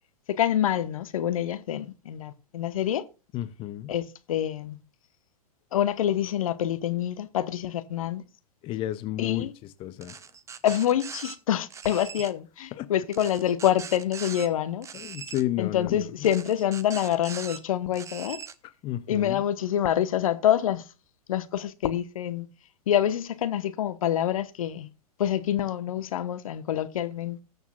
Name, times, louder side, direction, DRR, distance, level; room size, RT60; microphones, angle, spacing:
voice 1, 0.3-3.0 3.9-4.8 5.7-8.2 9.2-9.5 10.6-14.9 15.6-18.4 19.1-20.8 21.3-22.5 22.9-24.9 25.2-27.4, left 11 dB, 60° left, 1.0 m, -26 dB
voice 2, 3.3-3.9 8.6-10.2 12.7-12.9 14.9-16.3 18.8-19.4, left 13 dB, 25° left, 0.6 m, -32 dB
sound 1, 10.0-11.4 11.7-12.3 13.1-14.5 14.8-15.4 16.2-17.6 17.9-18.5, right 7 dB, 15° right, 0.7 m, -41 dB
19.5 x 6.7 x 2.3 m
figure-of-eight pair, 105°, 20 cm